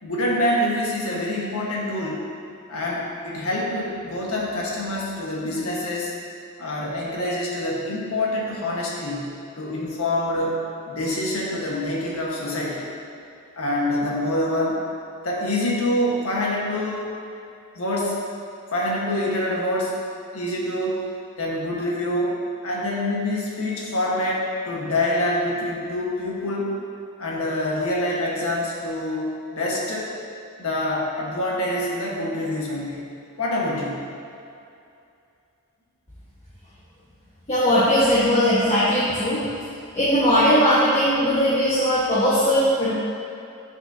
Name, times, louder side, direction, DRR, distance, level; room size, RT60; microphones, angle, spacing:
voice 1, 0.0-2.2 2.7-6.1 6.6-9.3 9.6-12.9 13.5-14.8 15.2-17.0 17.7-18.2 18.7-20.0 20.3-21.0 21.4-22.4 22.6-26.8 27.2-30.1 30.6-33.1 33.4-34.0, left 1 dB, 85° left, -4 dB, 1.5 m, -26 dB
voice 2, 37.5-39.4 39.9-42.9, equal, 30° left, -11 dB, 1.4 m, -19 dB
9.7 x 5.9 x 2.8 m, 2.6 s
head